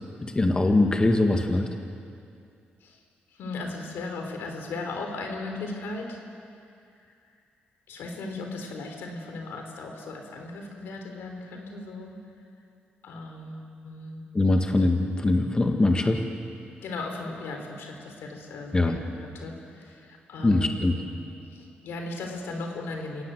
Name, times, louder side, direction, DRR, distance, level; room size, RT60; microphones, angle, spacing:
voice 1, 0.2-1.7 14.3-16.2 18.7-19.0 20.4-20.9, left 2 dB, 25° left, 4 dB, 1.8 m, -22 dB
voice 2, 3.4-6.2 7.9-12.2 13.0-14.3 16.8-20.9 21.5-23.2, left 2 dB, 85° left, 3 dB, 4.1 m, -37 dB
27.0 x 18.5 x 8.0 m, 2.4 s
cardioid pair, 85°, 4 cm